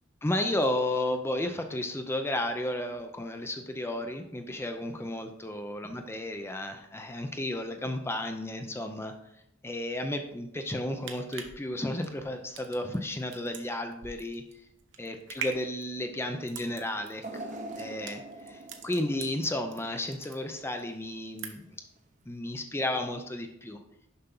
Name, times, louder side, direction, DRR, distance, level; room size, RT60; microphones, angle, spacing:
voice 1, 0.2-9.1 9.6-14.4 15.0-17.5 17.8-21.7 22.3-23.8, left 1 dB, 10° left, 6 dB, 0.5 m, -33 dB
sound 1, 10.9-19.8 20.1-20.8 21.1-21.8 22.2-22.3, right 6 dB, 65° right, 0.9 m, -43 dB
sound 2, 17.2-20.4 20.8-20.9 22.0-22.1, right 2 dB, 35° right, 0.8 m, -43 dB
6.7 x 5.7 x 3.8 m, 0.79 s
head